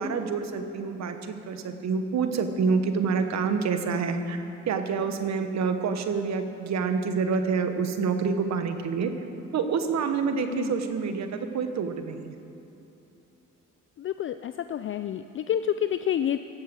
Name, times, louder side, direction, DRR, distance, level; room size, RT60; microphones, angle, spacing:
voice 1, 0.0-4.4 4.7-9.1 9.5-12.3, right 5 dB, 60° right, 7 dB, 1.2 m, -27 dB
voice 2, 14.0-16.4, left 10 dB, 45° left, 10 dB, 0.4 m, -28 dB
17.0 x 7.4 x 6.3 m, 3.0 s
cardioid pair, 90°, 30 cm